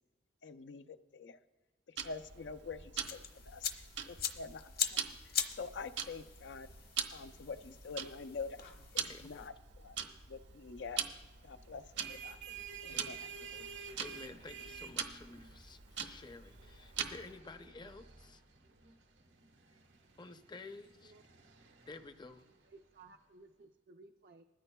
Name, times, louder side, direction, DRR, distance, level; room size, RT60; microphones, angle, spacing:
voice 1, 0.4-1.4 2.0-3.2 3.5-3.7 4.1-5.1 5.5-6.7 7.1-8.6 8.9-10.0 10.3-11.0 11.4-13.3, left 4 dB, 75° left, 10 dB, 0.5 m, -46 dB
Tick-tock, 2.0-17.4, right 7 dB, 75° right, 1.1 m, -44 dB
sound 1, 3.0-9.5, left 8 dB, 55° left, 1.1 m, -42 dB
voice 2, 9.0-9.5 12.9-13.1 13.4-18.4 20.2-21.2 21.9-22.5, left 3 dB, 25° left, 9 dB, 0.6 m, -52 dB
sound 2, 11.7-23.0, right 6 dB, 90° right, 1.3 m, -52 dB
voice 3, 22.6-24.4, right 3 dB, 55° right, 4 dB, 0.5 m, -58 dB
20.5 x 14.0 x 2.3 m, 1.2 s
head